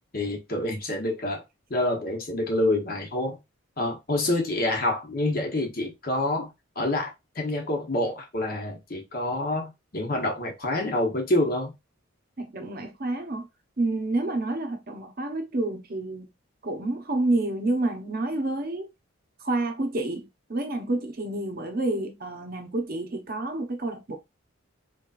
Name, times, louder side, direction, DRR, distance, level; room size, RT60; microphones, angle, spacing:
voice 1, 0.1-1.4 1.7-3.4 3.8-6.5 6.8-11.7, left 1 dB, 45° left, 1.1 m, -27 dB
voice 2, 12.4-13.5 13.8-16.3 16.6-18.9 19.4-24.2, right 2 dB, 45° right, 0.9 m, -29 dB
4.1 x 3.1 x 2.5 m
head